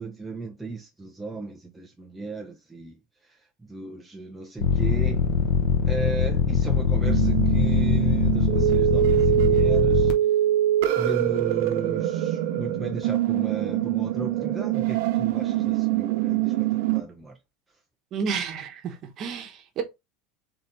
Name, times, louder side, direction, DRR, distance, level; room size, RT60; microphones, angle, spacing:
voice 1, 0.0-3.0 3.2-5.3 5.9-10.1 11.0-17.4, right 2 dB, 5° right, 0.4 m, -35 dB
sound 1, 4.6-10.1, left 6 dB, 55° left, 1.0 m, -22 dB
sound 2, 7.0-17.0, right 13 dB, 60° right, 0.8 m, -24 dB
voice 2, 18.1-19.8, right 6 dB, 35° right, 1.0 m, -31 dB
3.8 x 3.4 x 4.0 m
supercardioid pair, 165°, 0 cm